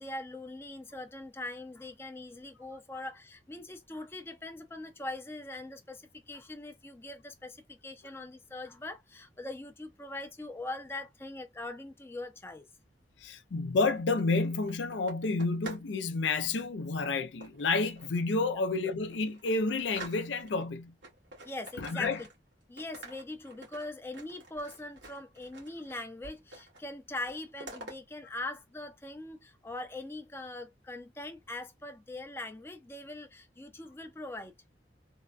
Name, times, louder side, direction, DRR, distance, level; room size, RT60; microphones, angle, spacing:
voice 1, 0.0-12.7 18.5-18.6 21.4-22.3 22.7-34.5, left 2 dB, 15° left, 0.5 m, -42 dB
voice 2, 13.2-21.0 21.8-22.2, left 3 dB, 85° left, 0.5 m, -30 dB
sound 1, 14.0-15.9 16.2-16.6 17.4-18.2 18.7-18.8 19.1-20.6 21.0-22.5 22.8-25.9 26.2-26.8 27.1-28.0, right 2 dB, 90° right, 1.6 m, -49 dB
3.4 x 2.2 x 2.4 m
head